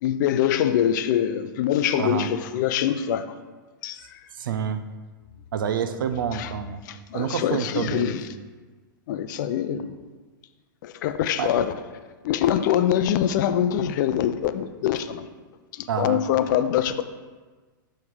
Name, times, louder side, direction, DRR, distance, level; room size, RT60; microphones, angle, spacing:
voice 1, 0.0-3.3 3.8-4.0 6.3-6.5 6.9-8.3 9.1-9.9 10.8-11.7 12.2-15.3 15.7-17.0, left 10 dB, 60° left, 0.5 m, -24 dB
voice 2, 2.0-2.3 4.4-4.8 5.5-6.8 7.1-8.1 11.4-11.5 15.9-16.2, right 7 dB, 75° right, 0.5 m, -27 dB
6.4 x 3.3 x 5.6 m
hypercardioid pair, 110°, 11 cm